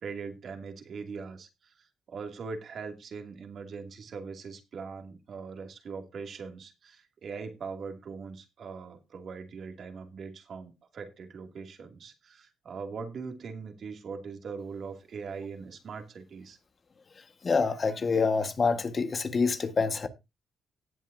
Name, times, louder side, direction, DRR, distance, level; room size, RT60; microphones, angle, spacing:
voice 1, 0.0-16.6, right 5 dB, 55° right, 2.5 m, -41 dB
voice 2, 17.4-20.1, left 4 dB, 40° left, 1.5 m, -26 dB
18.0 x 7.4 x 2.7 m
cardioid pair, 90°, 0 cm